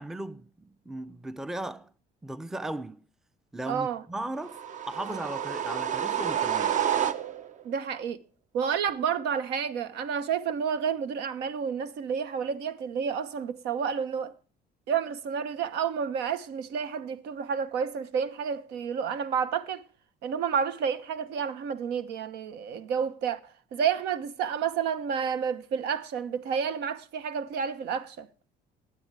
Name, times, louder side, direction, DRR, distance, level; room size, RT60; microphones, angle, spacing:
voice 1, 0.0-1.9 2.2-3.0 3.5-6.9, right 1 dB, 5° right, 0.5 m, -37 dB
voice 2, 3.6-4.0 7.6-8.2 8.5-14.3 14.9-19.8 20.2-28.3, right 7 dB, 80° right, 1.0 m, -30 dB
sound 1, 4.4-7.6, right 9 dB, 45° right, 0.8 m, -29 dB
20.0 x 8.0 x 3.3 m
cardioid pair, 110°, 17 cm